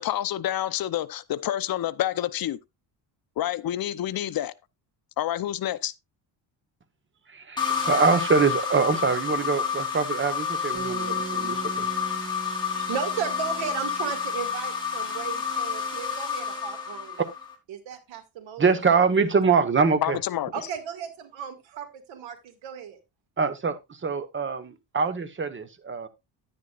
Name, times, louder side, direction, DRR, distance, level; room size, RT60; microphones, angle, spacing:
voice 1, 0.0-2.6 3.4-4.5 5.2-5.9 20.0-20.5, left 12 dB, 50° left, 0.7 m, -28 dB
voice 2, 7.3-11.9 18.6-20.2 23.4-26.1, right 5 dB, 25° right, 1.2 m, -24 dB
sound 1, 7.6-17.5, left 6 dB, 10° left, 3.3 m, -29 dB
sound 2, 10.7-15.0, right 4 dB, 55° right, 4.8 m, -40 dB
voice 3, 12.7-17.2 17.7-18.6 18.9-19.1 20.5-23.0, right 8 dB, 90° right, 2.2 m, -35 dB
10.5 x 9.7 x 2.4 m
cardioid pair, 120°, 44 cm